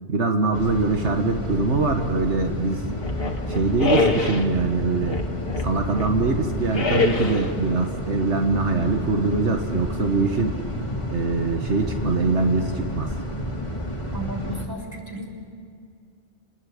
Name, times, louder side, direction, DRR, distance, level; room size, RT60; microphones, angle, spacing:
voice 1, 0.1-2.8 3.5-5.2 5.6-10.6 11.1-13.1, right 3 dB, 80° right, 4 dB, 1.8 m, -23 dB
sound 1, 0.5-14.7, equal, 25° left, 2.6 m, -31 dB
sound 2, 3.0-4.5 5.0-6.2 6.7-7.5, left 3 dB, 55° left, 2.1 m, -25 dB
voice 2, 14.1-15.3, right 2 dB, 20° right, 0 dB, 6.0 m, -34 dB
30.0 x 20.0 x 8.8 m, 2.3 s
omnidirectional pair, 1.2 m